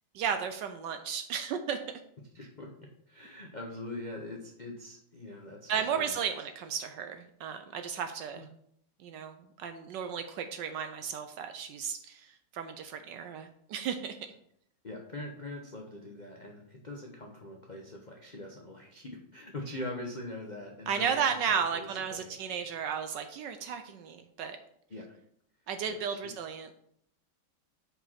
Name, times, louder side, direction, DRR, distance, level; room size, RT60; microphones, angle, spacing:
voice 1, 0.1-1.8 5.7-8.5 9.0-14.2 20.9-24.6 25.7-26.7, right 7 dB, 75° right, 8 dB, 1.1 m, -34 dB
voice 2, 2.3-2.7 3.1-6.2 8.3-8.5 14.8-21.2 21.5-22.3 24.9-25.1 25.9-26.3, left 1 dB, 60° left, 0 dB, 0.4 m, -43 dB
5.4 x 4.9 x 5.6 m, 0.70 s
omnidirectional pair, 2.3 m